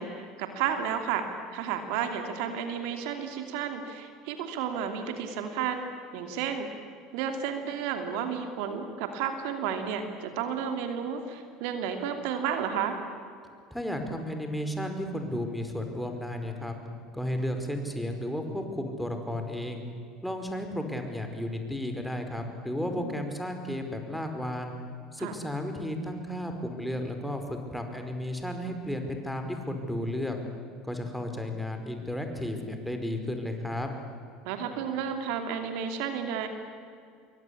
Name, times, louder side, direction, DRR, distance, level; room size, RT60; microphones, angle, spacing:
voice 1, 0.0-6.7 7.1-13.0 22.9-23.1 25.2-25.3 34.4-36.5, right 7 dB, 65° right, 6 dB, 2.8 m, -32 dB
voice 2, 13.7-16.7 17.1-19.8 20.2-24.7 25.1-30.4 30.8-33.9, left 1 dB, ahead, 5 dB, 5.0 m, -33 dB
27.0 x 23.0 x 8.5 m, 2.3 s
hypercardioid pair, 70°, 0 cm